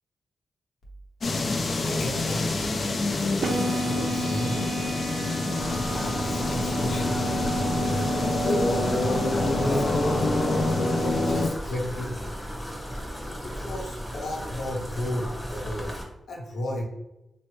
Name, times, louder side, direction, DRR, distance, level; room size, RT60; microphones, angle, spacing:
sound 1, 1.2-11.5, left 2 dB, 55° left, 0.4 m, -27 dB
voice 1, 1.8-2.5 3.2-4.8 5.6-7.2 8.4-9.8 10.7-12.4 13.5-16.0 16.3-16.8, equal, 85° left, -2 dB, 0.8 m, -34 dB
sound 2, 3.4-11.4, right 1 dB, 75° right, 0.4 m, -31 dB
sound 3, 5.6-16.0, equal, 5° left, 0.8 m, -35 dB
3.2 x 2.1 x 3.1 m, 0.90 s
cardioid pair, 80°, 0 cm